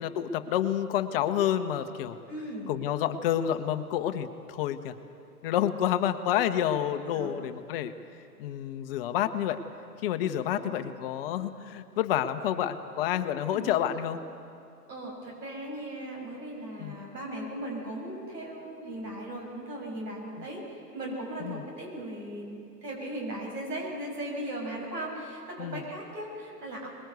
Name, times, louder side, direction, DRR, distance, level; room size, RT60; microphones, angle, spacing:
voice 1, 0.0-2.2 2.7-4.9 5.4-7.9 8.4-9.6 10.0-14.2 16.8-16.9 21.4-21.6 25.6-25.8, left 10 dB, 35° left, 9 dB, 1.1 m, -29 dB
voice 2, 2.3-2.7 7.1-7.3 10.5-10.7 13.5-13.7 14.9-26.9, right 1 dB, 80° right, -1 dB, 6.4 m, -38 dB
21.5 x 21.5 x 8.2 m, 2.5 s
hypercardioid pair, 130°, 48 cm